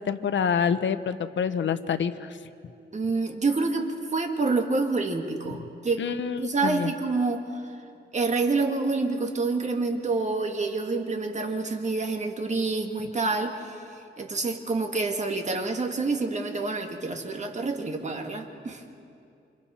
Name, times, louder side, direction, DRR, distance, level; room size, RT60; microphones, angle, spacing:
voice 1, 0.0-2.3 6.0-6.9, left 7 dB, 70° left, 11 dB, 0.9 m, -27 dB
voice 2, 2.9-6.1 6.4-7.6 8.1-13.8 14.2-18.8, right 3 dB, 35° right, 3 dB, 1.9 m, -27 dB
29.0 x 27.0 x 4.3 m, 2.6 s
wide cardioid pair, 135°, 20 cm